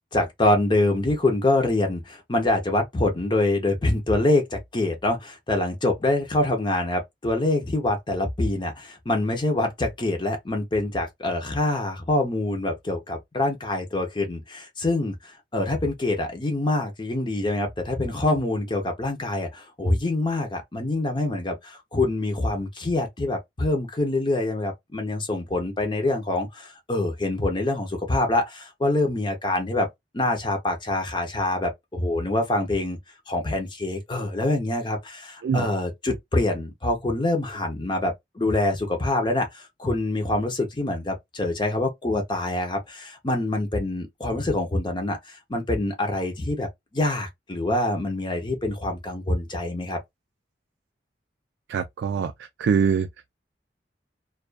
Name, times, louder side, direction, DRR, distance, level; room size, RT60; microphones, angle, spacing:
voice 1, 0.1-29.9 30.1-33.0 33.3-50.0, left 2 dB, 25° left, 0.6 m, -25 dB
voice 2, 51.7-53.1, right 6 dB, 80° right, 0.3 m, -24 dB
2.3 x 2.3 x 2.3 m
head